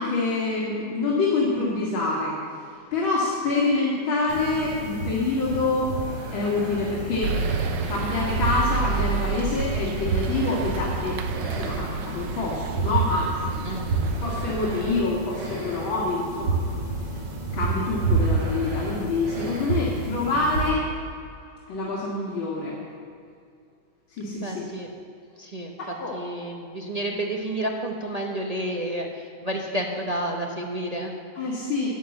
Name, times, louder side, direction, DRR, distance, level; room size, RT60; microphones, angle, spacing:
voice 1, 0.0-2.3 2.9-5.9 6.3-7.4 7.9-13.5 14.2-16.6 17.5-20.9 21.7-22.8 24.2-24.7 26.0-26.2 31.4-31.9, left 3 dB, 85° left, -5 dB, 2.7 m, -26 dB
sound 1, 4.3-20.7, right 3 dB, 90° right, 2.7 m, -29 dB
sound 2, 7.2-15.0, right 5 dB, 70° right, 1.4 m, -31 dB
voice 2, 13.6-14.1 24.4-24.9 25.4-25.8 26.1-31.2, right 1 dB, 35° right, 0 dB, 0.6 m, -30 dB
11.0 x 9.7 x 7.1 m, 2.4 s
omnidirectional pair, 2.1 m